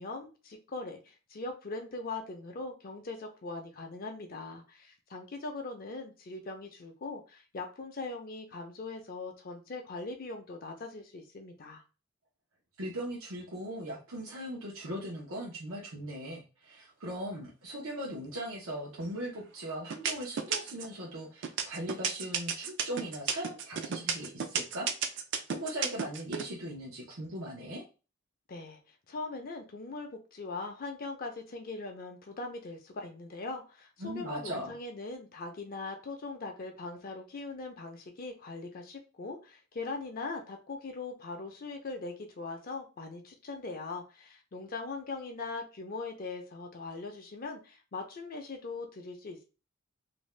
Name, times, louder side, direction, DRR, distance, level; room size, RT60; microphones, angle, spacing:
voice 1, 0.0-11.8 28.5-28.8 29.1-49.4, left 3 dB, 45° left, 4 dB, 0.5 m, -41 dB
voice 2, 12.8-25.2 25.5-27.8 34.0-34.7, right 1 dB, 90° right, -4 dB, 0.8 m, -39 dB
sound 1, 19.0-19.4 19.9-20.9 21.4-26.4, right 7 dB, 60° right, 0.4 m, -32 dB
2.6 x 2.2 x 3.1 m, 0.32 s
head